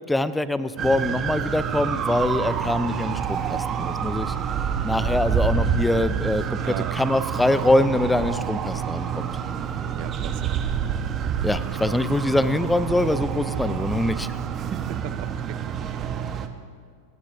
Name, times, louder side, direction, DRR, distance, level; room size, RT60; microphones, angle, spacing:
voice 1, 0.1-4.3 4.8-9.3 11.4-14.3, left 1 dB, 5° left, 14 dB, 0.6 m, -24 dB
sound 1, 0.8-16.5, right 7 dB, 25° right, 1.1 m, -27 dB
voice 2, 6.6-7.0 9.9-10.6 14.9-16.1, right 15 dB, 45° right, 15 dB, 0.5 m, -38 dB
28.5 x 17.5 x 2.7 m, 2.1 s
figure-of-eight pair, 90°, 0 cm